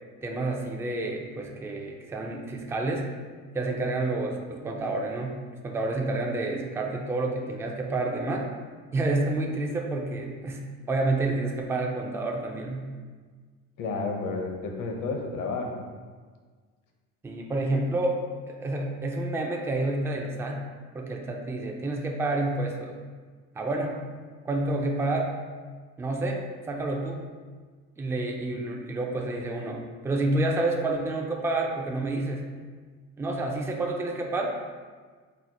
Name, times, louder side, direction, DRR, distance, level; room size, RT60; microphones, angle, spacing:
voice 1, 0.2-3.1 3.5-5.4 5.6-8.5 8.9-12.9 17.2-18.2 18.5-20.7 20.9-23.0 23.5-24.0 24.4-25.4 26.0-27.2 28.0-32.5 33.2-34.5, right 2 dB, 5° right, 1 dB, 0.4 m, -29 dB
voice 2, 13.8-15.8, left 3 dB, 55° left, 2 dB, 0.8 m, -31 dB
4.3 x 2.0 x 4.0 m, 1.5 s
supercardioid pair, 85°, 38 cm